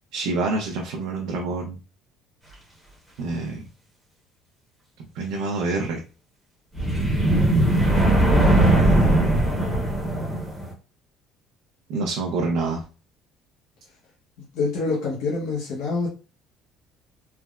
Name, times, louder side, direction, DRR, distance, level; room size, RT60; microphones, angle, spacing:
voice 1, 0.1-1.8 3.2-3.6 5.1-6.0 8.7-9.5 11.9-12.8, right 3 dB, 75° right, 0 dB, 0.5 m, -27 dB
sound 1, 6.8-10.7, right 1 dB, 5° left, 0.9 m, -19 dB
voice 2, 14.5-16.2, left 3 dB, 70° left, -4 dB, 0.7 m, -26 dB
3.3 x 2.0 x 2.3 m, 0.33 s
cardioid pair, 155°, 0 cm